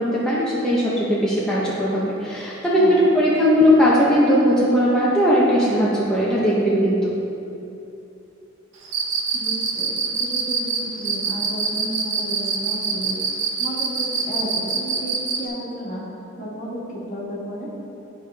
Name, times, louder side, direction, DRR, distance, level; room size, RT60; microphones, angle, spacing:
voice 1, 0.0-7.2, equal, 5° left, -8 dB, 0.8 m, -18 dB
voice 2, 2.8-3.2 9.3-13.2 13.6-16.0 16.4-17.7, equal, 40° left, -6 dB, 1.7 m, -33 dB
Cricket, 8.8-15.4, right 6 dB, 65° right, 0.9 m, -24 dB
10.5 x 4.8 x 3.4 m, 2.8 s
head